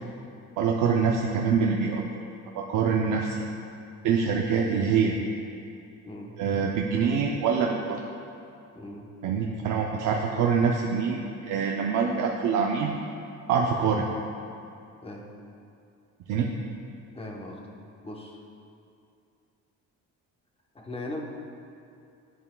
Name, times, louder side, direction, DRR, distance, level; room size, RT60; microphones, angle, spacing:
voice 1, 0.6-2.1 2.5-3.4 4.0-5.2 6.4-8.0 9.2-12.9 13.5-14.1 16.3-16.5, right 6 dB, 80° right, 0 dB, 0.6 m, -25 dB
voice 2, 6.0-6.4 8.7-9.1 15.0-15.3 17.1-17.6 18.0-18.4 20.7-21.2, left 1 dB, 20° left, 0 dB, 0.9 m, -38 dB
11.0 x 8.2 x 2.2 m, 2.5 s
cardioid pair, 140°, 31 cm